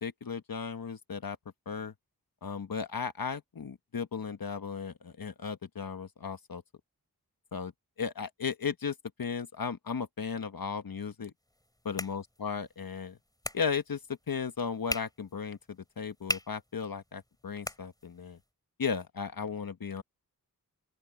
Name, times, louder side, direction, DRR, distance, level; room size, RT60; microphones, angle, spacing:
voice 1, 0.0-1.4 1.7-1.9 2.4-6.6 7.5-7.7 8.0-11.3 11.8-13.2 13.5-14.0 14.3-18.4 18.8-20.0, left 6 dB, 70° left, 1.3 m, -35 dB
sound 1, 11.4-18.5, left 1 dB, 10° left, 3.8 m, -42 dB
open air
cardioid pair, 45°, 36 cm